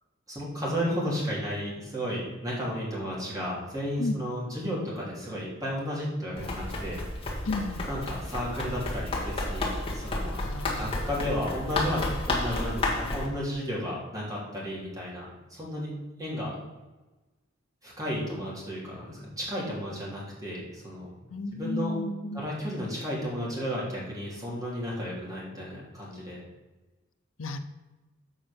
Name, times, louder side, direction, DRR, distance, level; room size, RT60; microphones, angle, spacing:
voice 1, 0.3-7.0 7.9-15.2 15.5-15.9 16.2-16.5 17.8-21.1 21.5-22.0 22.3-26.4, equal, 20° right, -6 dB, 3.1 m, -33 dB
Run, 6.4-13.3, left 2 dB, 30° left, 1.7 m, -31 dB
voice 2, 7.4-7.9 10.3-10.9 21.3-22.4 27.4-27.6, left 2 dB, 80° left, 7 dB, 0.8 m, -33 dB
7.4 x 5.4 x 6.9 m, 1.1 s
head